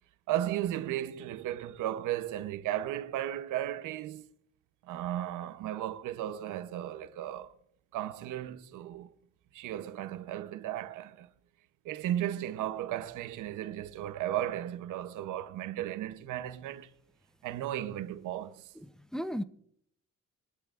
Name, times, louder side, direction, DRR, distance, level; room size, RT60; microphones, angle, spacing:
voice 1, 0.3-4.3 4.8-7.5 7.9-9.1 9.5-11.3 11.8-16.9 17.4-18.7, right 12 dB, 85° right, 0.9 m, -35 dB
voice 2, 18.8-19.4, equal, ahead, 0.7 m, -36 dB
24.0 x 12.0 x 2.5 m
cardioid pair, 90°, 30 cm